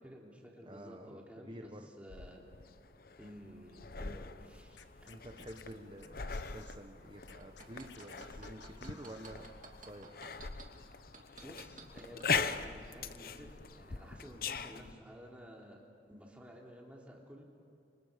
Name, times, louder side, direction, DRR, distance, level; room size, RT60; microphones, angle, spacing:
voice 1, 0.0-2.5 3.2-5.1 11.4-15.8 16.1-17.4, equal, 5° right, -2 dB, 3.1 m, -53 dB
voice 2, 0.6-1.9 5.1-9.4 9.8-10.1, right 1 dB, 25° right, 3 dB, 1.1 m, -49 dB
sound 1, 2.1-14.9, left 5 dB, 50° left, 0.8 m, -41 dB
Scratching (performance technique), 4.7-6.8 7.2-9.4, left 7 dB, 80° left, 1.3 m, -57 dB
sound 2, 7.4-10.6 11.1-12.3 12.8-12.9, right 4 dB, 45° right, 2.8 m, -52 dB
29.5 x 25.0 x 5.2 m, 2.6 s
head